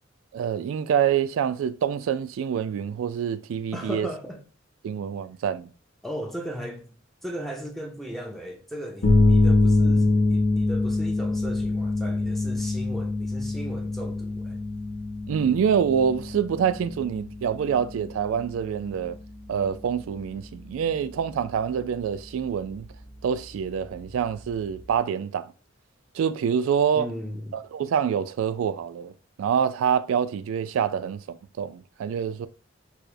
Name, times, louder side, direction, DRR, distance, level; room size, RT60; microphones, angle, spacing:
voice 1, 0.3-4.1 4.8-5.7 15.3-19.2 19.5-22.9 23.2-25.5 26.2-27.1 27.5-29.1 29.4-32.5, right 7 dB, 90° right, 0.3 m, -26 dB
voice 2, 3.7-4.4 6.0-14.6 27.0-27.6, equal, ahead, 0.4 m, -37 dB
sound 1, 9.0-24.9, left 2 dB, 90° left, 0.8 m, -26 dB
4.6 x 2.1 x 2.6 m
head